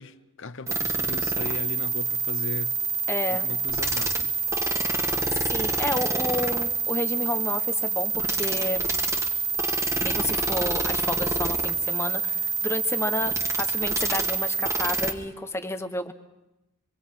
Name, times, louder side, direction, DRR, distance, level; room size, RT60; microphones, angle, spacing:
voice 1, 0.0-2.7 3.4-4.3, left 4 dB, 60° left, 0.9 m, -37 dB
sound 1, 0.7-15.1, right 4 dB, 15° right, 1.9 m, -26 dB
voice 2, 3.1-3.5 5.3-8.9 9.8-16.1, left 1 dB, 10° left, 1.2 m, -30 dB
26.0 x 24.5 x 5.7 m
head